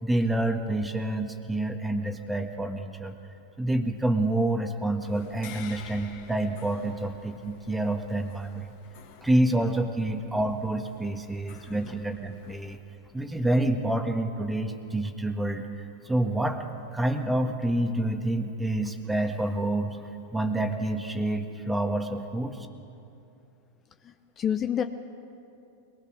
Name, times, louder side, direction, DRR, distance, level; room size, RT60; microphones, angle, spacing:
voice 1, 0.0-3.1 3.6-8.7 9.2-12.8 13.1-15.7 16.0-16.6 16.9-20.0 20.3-22.7, right 1 dB, 5° right, 5 dB, 1.7 m, -28 dB
sound 1, 5.0-12.8, left 7 dB, 65° left, 2.8 m, -50 dB
voice 2, 24.0-24.8, left 9 dB, 30° left, 7 dB, 0.8 m, -28 dB
22.5 x 19.5 x 6.4 m, 2.7 s
hypercardioid pair, 110°, 0 cm